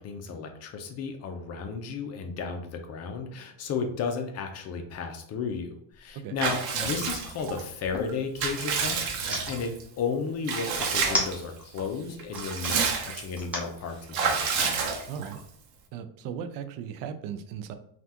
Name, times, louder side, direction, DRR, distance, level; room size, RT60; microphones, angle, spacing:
voice 1, 0.0-14.8, left 5 dB, 35° left, 4 dB, 0.5 m, -34 dB
sound 1, 5.9-6.1 6.5-8.1 9.0-9.4 10.8-11.8 12.2-12.7 13.4-13.7, equal, 5° right, 0.7 m, -33 dB
Water / Bathtub (filling or washing) / Liquid, 6.4-7.6 8.1-9.8 10.5-11.4 11.8-11.9 12.2-13.4 14.1-15.4, right 5 dB, 90° right, 0.8 m, -29 dB
voice 2, 15.1-15.4 15.9-17.8, right 8 dB, 50° right, 9 dB, 0.4 m, -37 dB
3.3 x 2.4 x 2.8 m, 0.71 s
supercardioid pair, 125°, 46 cm